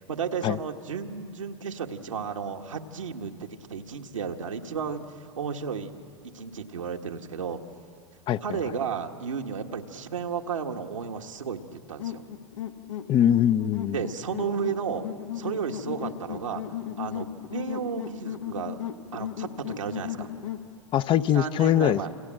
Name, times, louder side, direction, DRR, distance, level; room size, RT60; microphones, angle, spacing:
voice 1, 0.0-5.9 6.3-7.6 8.4-12.2 13.9-15.1 15.3-16.6 17.0-18.8 19.1-20.3 21.3-22.1, right 6 dB, 90° right, 3 dB, 1.6 m, -33 dB
sound 1, 12.0-20.7, left 10 dB, 80° left, 1.4 m, -36 dB
voice 2, 13.1-14.0 20.9-22.0, left 10 dB, 30° left, 15 dB, 0.6 m, -22 dB
29.0 x 26.5 x 7.6 m, 2.4 s
hypercardioid pair, 105°, 16 cm